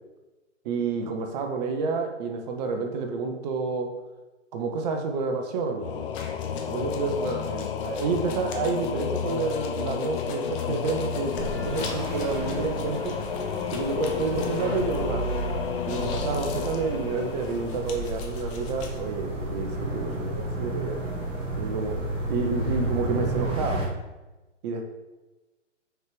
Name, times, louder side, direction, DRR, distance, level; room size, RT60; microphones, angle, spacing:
voice 1, 0.6-3.9 4.5-6.1 6.7-13.2 13.7-15.2 15.9-21.1 21.6-21.9 22.3-23.8 24.6-24.9, right 4 dB, 35° right, 4 dB, 1.0 m, -29 dB
Singing / Musical instrument, 5.8-18.4, left 8 dB, 45° left, 0.5 m, -32 dB
sound 1, 6.1-15.4 15.7-19.0, left 5 dB, 25° left, 0.9 m, -45 dB
sound 2, 11.3-23.9, right 2 dB, 15° right, 1.5 m, -32 dB
6.3 x 4.9 x 5.0 m, 1.1 s
hypercardioid pair, 130°, 37 cm